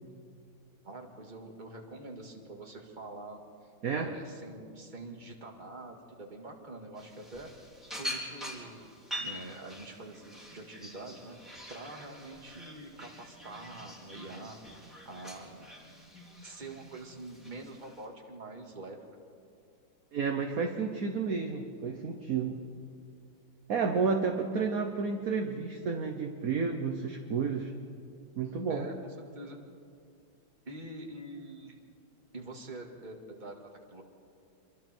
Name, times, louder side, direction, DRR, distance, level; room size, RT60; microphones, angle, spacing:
voice 1, 0.8-3.4 3.9-7.5 8.0-8.8 9.2-11.4 11.7-14.6 15.0-15.7 16.4-19.0 28.7-29.6 30.7-31.8 32.3-34.0, right 2 dB, 25° right, 2 dB, 2.1 m, -45 dB
sound 1, 7.0-18.1, equal, ahead, 4.5 m, -45 dB
voice 2, 20.1-22.6 23.7-27.7 28.4-28.9, right 5 dB, 50° right, 4 dB, 1.4 m, -31 dB
27.5 x 23.5 x 4.5 m, 2.4 s
omnidirectional pair, 2.1 m